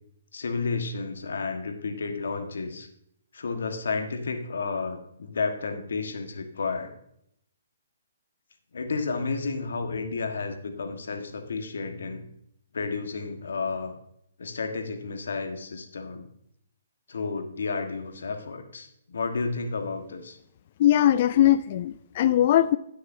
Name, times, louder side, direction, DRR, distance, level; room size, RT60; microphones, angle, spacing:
voice 1, 0.3-2.9 3.3-6.9 8.7-12.2 12.7-13.9 14.4-16.3 17.1-20.4, left 4 dB, 75° left, 5 dB, 1.5 m, -31 dB
voice 2, 20.8-22.8, left 12 dB, 45° left, 14 dB, 0.3 m, -20 dB
18.5 x 6.4 x 2.7 m, 0.73 s
hypercardioid pair, 135°, 0 cm